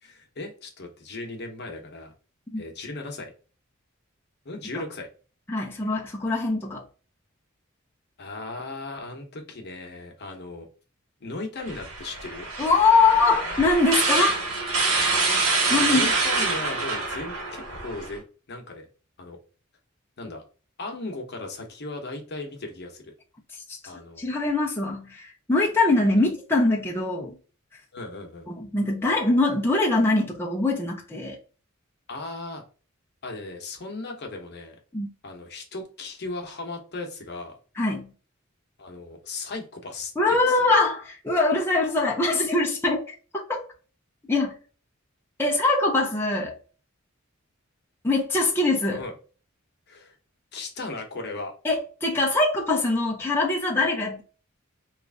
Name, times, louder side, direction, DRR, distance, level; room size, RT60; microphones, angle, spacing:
voice 1, 0.0-2.1 2.6-3.3 4.4-5.1 8.2-10.7 11.2-12.5 15.6-18.2 18.5-18.9 19.2-19.4 20.2-20.4 20.8-23.1 23.9-24.2 26.2-26.3 27.9-28.5 32.1-32.6 33.2-34.8 35.2-37.6 38.8-40.7 48.9-49.1 49.9-50.1 50.5-51.5, left 2 dB, 55° left, 0.9 m, -37 dB
voice 2, 5.5-6.8 12.6-14.4 15.7-16.1 23.5-23.8 24.2-27.3 28.5-31.4 34.9-35.1 37.8-38.1 40.2-43.0 43.3-43.7 44.3-44.6 45.4-46.6 48.0-49.0 51.6-54.2, left 3 dB, 10° left, 0.5 m, -23 dB
sound 1, 11.7-18.2, right 3 dB, 85° right, 1.2 m, -26 dB
3.1 x 2.5 x 3.3 m
head